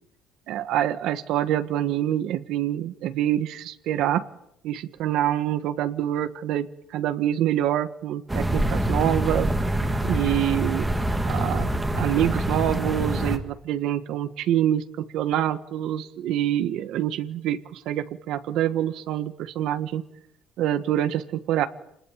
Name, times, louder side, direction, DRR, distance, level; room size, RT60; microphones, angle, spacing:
voice 1, 0.5-4.2 4.6-9.5 10.0-10.9 11.3-20.0 20.6-21.7, right 12 dB, 65° right, 10 dB, 1.6 m, -26 dB
sound 1, 8.3-13.4, right 1 dB, 10° right, 2.1 m, -25 dB
28.5 x 20.0 x 9.3 m, 0.77 s
cardioid pair, 180°, 0 cm